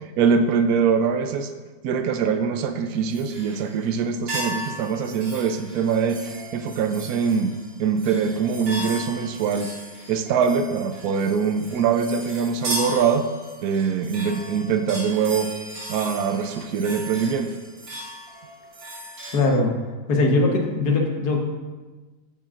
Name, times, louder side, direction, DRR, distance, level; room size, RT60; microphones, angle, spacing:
voice 1, 0.2-1.5 1.8-9.7 10.1-13.2 13.6-15.5 15.9-17.5, right 6 dB, 85° right, 7 dB, 0.8 m, -23 dB
sound 1, 3.1-3.9 4.3-19.4, right 1 dB, 60° right, 2.9 m, -36 dB
voice 2, 19.3-19.7 20.1-21.4, left 2 dB, 55° left, 0 dB, 1.6 m, -20 dB
13.5 x 7.0 x 2.5 m, 1.3 s
omnidirectional pair, 2.3 m